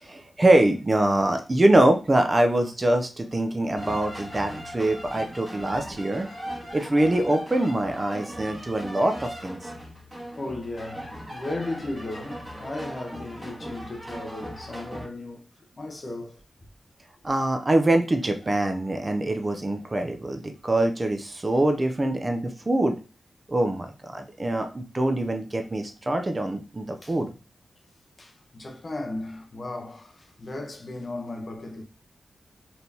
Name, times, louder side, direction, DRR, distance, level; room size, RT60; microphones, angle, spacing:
voice 1, 0.0-6.3 6.7-9.6 12.6-12.7 17.2-23.0 23.5-27.3, right 1 dB, 25° right, 0.5 m, -24 dB
sound 1, 3.8-15.1, equal, 10° right, 1.7 m, -39 dB
voice 2, 10.4-15.4 15.8-16.4 27.0-27.1 28.2-31.8, left 2 dB, 40° left, 0.9 m, -35 dB
4.3 x 3.4 x 2.8 m
wide cardioid pair, 120°, 0 cm